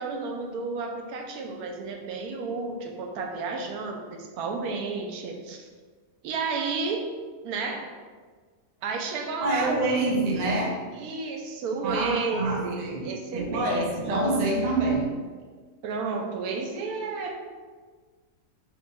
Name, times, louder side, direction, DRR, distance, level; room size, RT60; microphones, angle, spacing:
voice 1, 0.0-5.7 6.2-7.1 7.4-7.9 8.8-9.8 10.9-14.2 15.8-17.4, right 4 dB, 90° right, 3 dB, 1.1 m, -32 dB
voice 2, 9.4-10.8 11.8-15.2, right 2 dB, 50° right, -1 dB, 0.5 m, -26 dB
6.0 x 3.0 x 2.2 m, 1.5 s
omnidirectional pair, 1.6 m